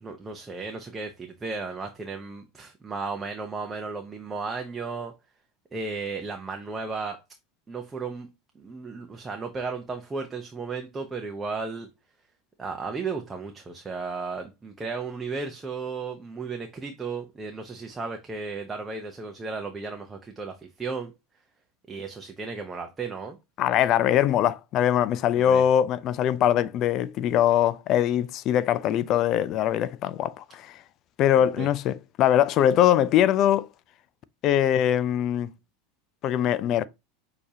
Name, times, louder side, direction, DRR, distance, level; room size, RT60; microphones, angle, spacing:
voice 1, 0.0-5.1 5.7-7.2 7.7-8.3 8.6-11.9 12.6-21.1 21.9-23.4 25.3-25.6 31.4-31.7, right 4 dB, 20° right, 0.7 m, -34 dB
voice 2, 23.6-30.7 31.2-33.7 34.4-35.5 36.2-36.9, left 10 dB, 50° left, 0.4 m, -22 dB
6.5 x 2.8 x 2.8 m
hypercardioid pair, 95°, 0 cm